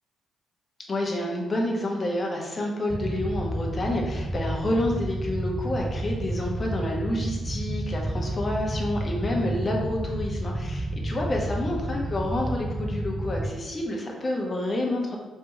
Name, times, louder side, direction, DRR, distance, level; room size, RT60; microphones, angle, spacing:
voice 1, 0.9-15.2, left 1 dB, 35° left, -1 dB, 1.0 m, -29 dB
sound 1, 2.9-13.5, right 1 dB, 10° right, 0.4 m, -30 dB
3.3 x 3.0 x 4.7 m, 1.2 s
cardioid pair, 80°, 0 cm